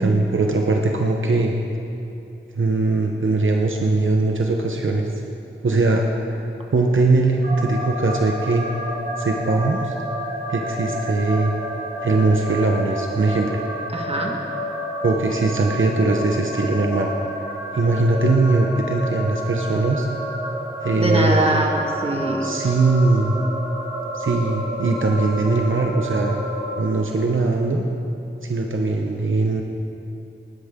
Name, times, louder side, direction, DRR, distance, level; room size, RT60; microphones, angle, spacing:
voice 1, 0.0-1.5 2.6-5.1 5.6-8.6 9.2-9.9 10.5-11.5 12.0-13.6 15.0-17.1 17.7-20.1 20.8-21.6 22.4-23.4 24.1-26.4 26.8-27.9 28.4-29.6, right 3 dB, 70° right, 1 dB, 0.9 m, -20 dB
sound 1, 7.4-26.8, equal, 50° right, 3.3 m, -30 dB
voice 2, 13.9-14.3 21.0-22.5, right 1 dB, 30° right, 0 dB, 1.8 m, -22 dB
17.5 x 12.0 x 3.7 m, 2.7 s
wide cardioid pair, 60°, 21 cm